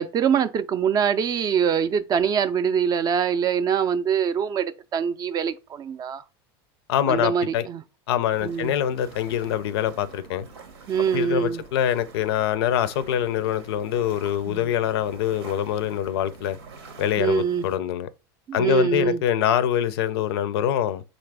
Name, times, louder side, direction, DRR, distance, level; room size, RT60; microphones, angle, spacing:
voice 1, 0.0-6.2 7.1-7.8 8.4-8.7 10.9-11.6 14.5-14.7 17.2-17.7 18.5-19.2, right 7 dB, 30° right, 0.3 m, -24 dB
voice 2, 6.9-7.7 8.1-10.5 11.1-16.6 17.0-18.1 18.5-21.0, left 10 dB, 75° left, 0.4 m, -24 dB
sound 1, 8.3-17.8, right 4 dB, 85° right, 0.9 m, -46 dB
3.9 x 2.5 x 3.3 m
hypercardioid pair, 105°, 13 cm